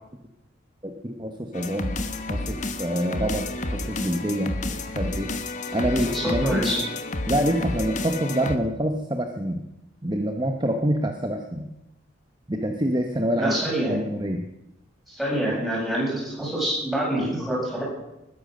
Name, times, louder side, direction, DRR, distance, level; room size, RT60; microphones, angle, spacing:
voice 1, 0.8-1.9 2.3-5.3 5.7-6.6 7.3-9.6 10.0-11.7 12.5-14.4, equal, 25° right, 4 dB, 1.0 m, -26 dB
sound 1, 1.5-8.6, left 2 dB, 40° left, 1.2 m, -30 dB
voice 2, 6.1-6.8 13.4-14.0 15.1-17.8, right 1 dB, ahead, -6 dB, 7.4 m, -26 dB
20.0 x 10.5 x 6.6 m, 0.91 s
head